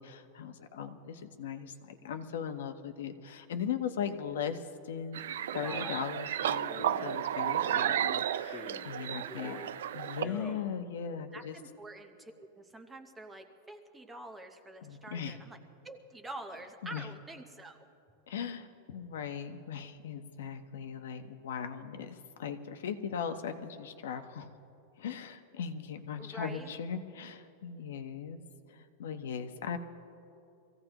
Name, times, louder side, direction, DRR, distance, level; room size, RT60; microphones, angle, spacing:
voice 1, 0.0-5.2 5.5-9.6 9.9-11.6 14.8-15.3 16.8-17.0 18.3-24.5 25.0-28.4 28.7-29.8, left 7 dB, 85° left, 7 dB, 1.1 m, -39 dB
sound 1, 5.1-10.2, right 10 dB, 85° right, 0.4 m, -33 dB
Male speech man speaking, 5.6-6.1 6.7-7.1 7.6-8.0 8.4-8.9 9.3-9.7 10.1-10.6, left 2 dB, 10° left, 1.6 m, -45 dB
voice 2, 9.1-9.7 11.3-15.6 15.8-17.8 18.1-18.3 26.2-26.8, right 2 dB, 5° right, 5 dB, 0.8 m, -47 dB
24.5 x 16.0 x 3.0 m, 2.7 s
supercardioid pair, 175°, 0 cm